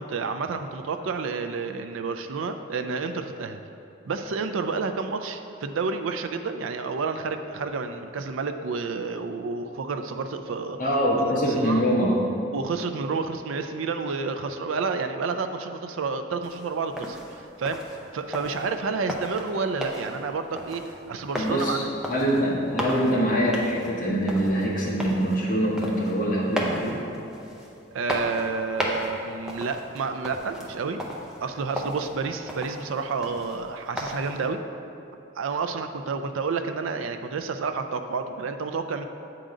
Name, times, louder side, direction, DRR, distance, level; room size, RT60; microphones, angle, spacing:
voice 1, 0.0-3.6 4.1-10.8 11.6-11.8 12.5-17.8 18.1-21.9 27.9-31.0 31.4-34.6 35.4-39.0, right 4 dB, 85° right, 8 dB, 0.4 m, -30 dB
voice 2, 10.8-12.3 21.3-21.8 22.1-27.0, equal, 40° left, -5 dB, 1.3 m, -24 dB
sound 1, 16.4-34.5, equal, 5° right, 0.5 m, -36 dB
7.7 x 3.8 x 4.9 m, 2.8 s
head